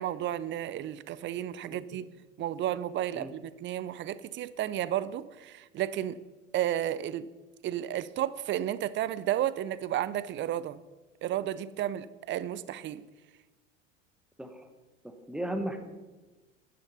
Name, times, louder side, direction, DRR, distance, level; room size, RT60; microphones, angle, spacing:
voice 1, 0.0-2.1 2.4-6.2 6.5-7.3 7.6-10.8 11.2-13.1, right 12 dB, 30° right, 17 dB, 0.5 m, -32 dB
voice 2, 15.0-15.8, right 1 dB, ahead, 6 dB, 1.5 m, -35 dB
10.0 x 10.0 x 5.6 m, 1.2 s
figure-of-eight pair, 75°, 39 cm